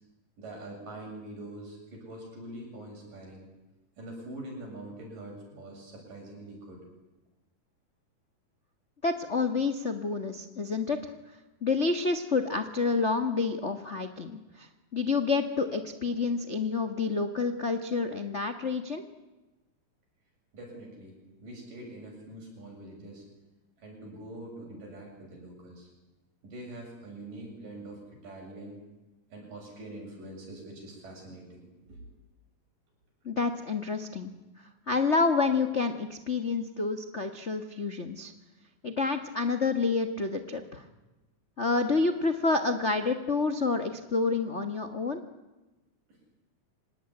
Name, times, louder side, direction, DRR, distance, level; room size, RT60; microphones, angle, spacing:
voice 1, 0.4-3.5 4.0-6.9 20.5-23.2 23.8-25.9 26.4-28.8 29.3-32.0, right 1 dB, 75° right, 0 dB, 9.1 m, -44 dB
voice 2, 9.0-11.1 11.6-19.0 33.2-34.3 34.9-38.3 38.8-40.8 41.6-45.2, left 4 dB, 80° left, 7 dB, 0.6 m, -28 dB
25.5 x 19.0 x 10.0 m, 1.1 s
omnidirectional pair, 3.9 m